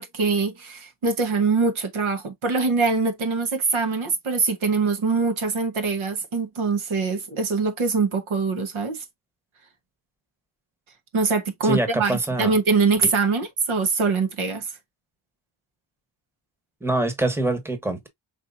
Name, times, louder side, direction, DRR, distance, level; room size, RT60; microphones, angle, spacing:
voice 1, 0.0-9.0 11.1-14.7, right 4 dB, 70° right, 1.2 m, -23 dB
voice 2, 11.6-12.5 16.8-18.1, right 2 dB, 5° right, 1.1 m, -25 dB
5.3 x 3.0 x 2.6 m
wide cardioid pair, 100°, 49 cm